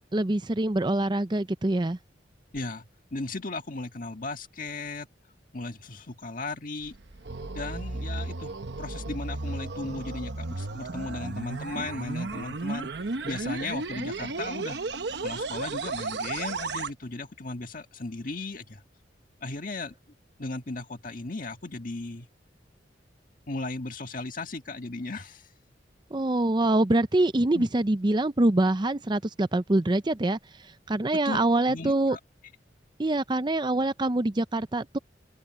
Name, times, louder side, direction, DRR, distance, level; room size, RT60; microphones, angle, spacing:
voice 1, 0.1-2.0 26.1-32.2 33.0-35.0, right 2 dB, 25° right, 0.6 m, -25 dB
voice 2, 2.5-5.1 5.5-7.0 7.5-8.5 8.8-12.9 13.2-14.8 15.2-18.8 19.4-19.9 20.4-22.3 23.5-25.4 27.5-27.7 31.1-31.4 31.7-32.2, left 2 dB, 50° left, 1.8 m, -36 dB
sound 1, 6.8-16.9, right 3 dB, 70° right, 1.0 m, -34 dB
open air
head